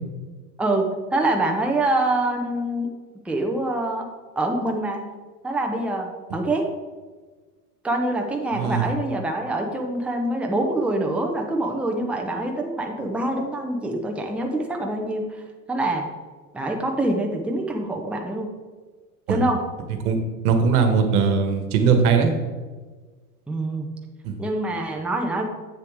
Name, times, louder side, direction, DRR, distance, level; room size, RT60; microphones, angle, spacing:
voice 1, 1.1-2.9 3.2-4.1 4.4-5.0 5.4-6.7 7.8-15.2 15.7-16.1 16.5-18.5 19.3-19.6 23.5-23.9 24.4-25.4, right 2 dB, 5° right, 1 dB, 0.8 m, -25 dB
voice 2, 8.5-8.8 19.3-19.4 20.0-20.2 20.4-22.3 24.2-24.3, right 6 dB, 70° right, 6 dB, 1.4 m, -19 dB
8.0 x 6.7 x 3.5 m, 1.4 s
hypercardioid pair, 105°, 46 cm